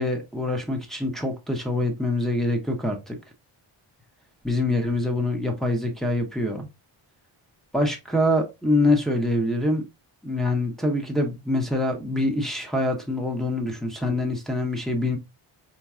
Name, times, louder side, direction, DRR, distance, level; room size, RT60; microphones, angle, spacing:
voice 1, 0.0-3.2 4.4-6.7 7.7-9.8 10.2-15.2, left 1 dB, ahead, 1.2 m, -25 dB
4.5 x 3.0 x 2.4 m
cardioid pair, 70°, 50 cm